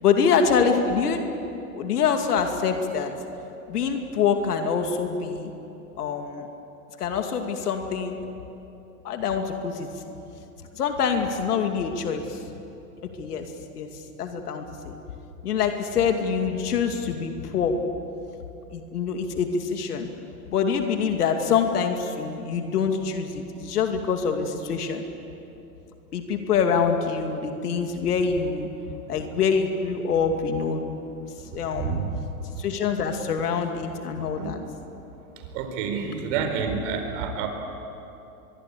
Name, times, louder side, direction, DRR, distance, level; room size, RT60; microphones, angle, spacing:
voice 1, 0.0-1.2 1.7-3.1 3.7-5.5 6.0-6.5 7.0-8.2 9.0-10.0 10.7-12.4 13.2-15.0 15.4-17.8 18.7-20.1 20.5-25.0 26.1-28.7 29.1-30.8 31.4-32.0 32.6-34.6, left 6 dB, 90° left, 5 dB, 2.5 m, -25 dB
voice 2, 31.7-32.2 32.5-32.6 34.0-34.1 34.4-34.6 35.5-37.5, right 6 dB, 55° right, 6 dB, 4.5 m, -29 dB
23.0 x 23.0 x 8.5 m, 2.9 s
hypercardioid pair, 130°, 45 cm